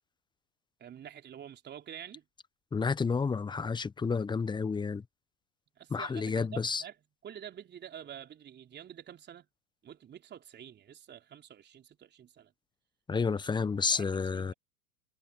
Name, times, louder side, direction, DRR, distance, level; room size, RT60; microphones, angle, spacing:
voice 1, 0.8-2.2 5.8-6.9 7.2-9.5 9.8-12.5 13.3-13.5 13.9-14.5, right 9 dB, 25° right, 3.8 m, -48 dB
voice 2, 2.7-5.0 5.9-6.8 13.1-14.5, left 5 dB, 10° left, 1.3 m, -30 dB
figure-of-eight pair, 95°, 41 cm